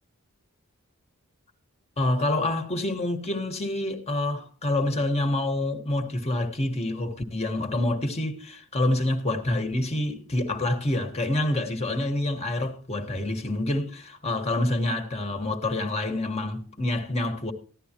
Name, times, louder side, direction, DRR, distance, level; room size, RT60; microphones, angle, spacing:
voice 1, 2.0-17.5, left 1 dB, 30° left, 1.5 m, -27 dB
15.5 x 11.0 x 3.0 m
head